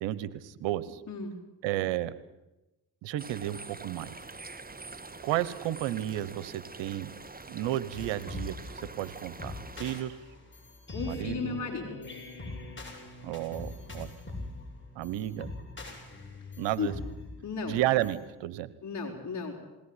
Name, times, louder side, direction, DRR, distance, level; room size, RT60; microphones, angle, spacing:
voice 1, 0.0-1.0 1.6-2.1 3.0-4.2 5.2-7.1 7.5-9.5 9.8-10.2 11.0-11.6 13.2-14.1 15.0-15.5 16.6-16.9 17.7-18.7, right 14 dB, 90° right, 17 dB, 1.2 m, -32 dB
sound 1, 3.2-10.0, right 3 dB, 20° right, 1.6 m, -45 dB
sound 2, 7.9-18.2, left 2 dB, 25° left, 7.8 m, -43 dB
voice 2, 10.9-12.0 16.8-16.9 17.4-17.8 18.8-19.6, left 4 dB, 40° left, -2 dB, 4.9 m, -34 dB
21.0 x 17.5 x 9.8 m, 1.0 s
supercardioid pair, 60°, 42 cm